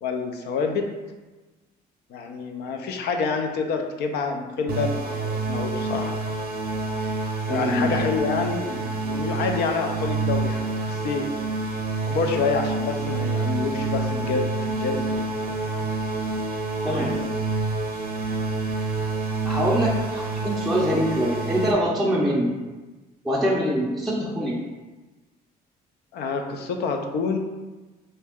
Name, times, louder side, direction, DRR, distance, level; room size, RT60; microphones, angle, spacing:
voice 1, 0.0-0.9 2.1-6.2 7.5-11.3 12.1-15.6 26.1-27.4, left 4 dB, 75° left, 4 dB, 0.5 m, -28 dB
sound 1, 4.7-21.7, right 3 dB, 60° right, 0.7 m, -27 dB
voice 2, 7.5-7.9 16.8-17.4 19.4-22.5 23.2-24.6, equal, ahead, -5 dB, 0.5 m, -24 dB
sound 2, 12.3-17.9, equal, 55° left, 1.3 m, -42 dB
3.2 x 2.8 x 3.5 m, 1.2 s
cardioid pair, 110°, 17 cm